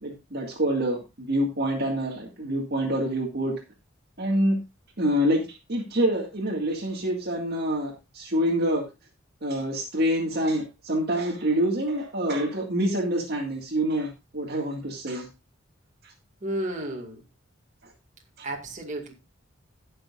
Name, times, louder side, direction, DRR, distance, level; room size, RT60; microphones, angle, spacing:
voice 1, 0.0-3.6 4.2-4.6 5.0-8.8 9.4-15.3 18.4-18.5, equal, 50° right, 1 dB, 2.0 m, -26 dB
voice 2, 16.4-17.2 18.4-19.1, right 1 dB, 35° right, 1 dB, 2.2 m, -32 dB
18.0 x 6.7 x 2.5 m, 0.25 s
head